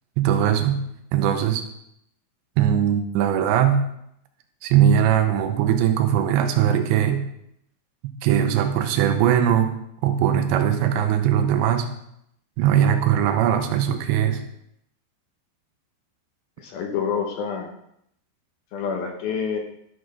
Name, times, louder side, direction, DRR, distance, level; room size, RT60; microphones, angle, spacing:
voice 1, 0.2-0.8 1.1-1.6 2.6-3.8 4.6-7.2 8.2-9.8 10.0-11.9 12.6-14.4, right 9 dB, 85° right, 6 dB, 3.1 m, -20 dB
voice 2, 16.6-17.7 18.7-19.6, left 6 dB, 70° left, 2 dB, 2.6 m, -27 dB
12.5 x 6.4 x 5.1 m, 0.74 s
omnidirectional pair, 5.1 m